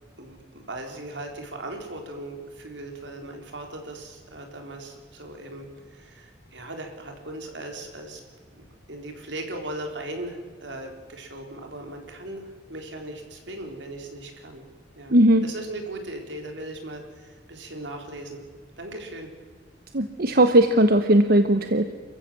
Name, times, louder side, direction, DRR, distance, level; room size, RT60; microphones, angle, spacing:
voice 1, 0.2-8.2 8.5-8.6 8.9-14.6 15.0-18.4 18.8-19.3, right 1 dB, 80° right, 3 dB, 4.0 m, -38 dB
voice 2, 15.1-15.4 19.9-21.9, right 1 dB, 55° right, 8 dB, 1.0 m, -18 dB
28.5 x 15.0 x 7.5 m, 1.5 s
head